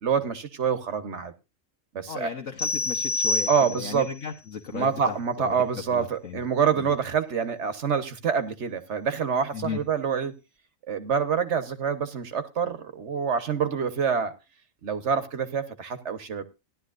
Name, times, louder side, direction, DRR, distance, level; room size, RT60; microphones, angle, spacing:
voice 1, 0.0-1.3 1.9-2.3 3.5-4.1 4.7-10.3 10.9-14.3 14.8-16.4, right 6 dB, 60° right, 10 dB, 1.4 m, -26 dB
voice 2, 2.1-5.6 5.9-6.4 6.7-6.9 9.5-9.8, left 7 dB, 75° left, 1 dB, 1.4 m, -36 dB
sound 1, 2.6-4.1, left 3 dB, 30° left, 1.2 m, -27 dB
16.0 x 11.5 x 2.5 m, 0.27 s
omnidirectional pair, 1.3 m